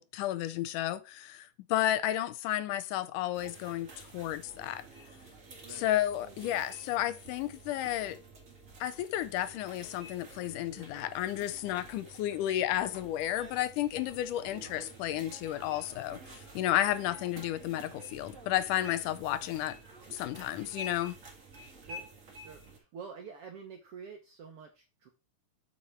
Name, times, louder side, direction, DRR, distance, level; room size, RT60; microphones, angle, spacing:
voice 1, 0.0-4.8 5.7-8.2 8.8-19.8 20.1-21.2, left 13 dB, 80° left, 2.0 m, -32 dB
sound 1, 3.3-22.8, right 1 dB, 35° right, 1.3 m, -50 dB
voice 2, 22.4-25.1, right 6 dB, 70° right, 1.4 m, -48 dB
7.3 x 5.6 x 4.4 m
omnidirectional pair, 3.8 m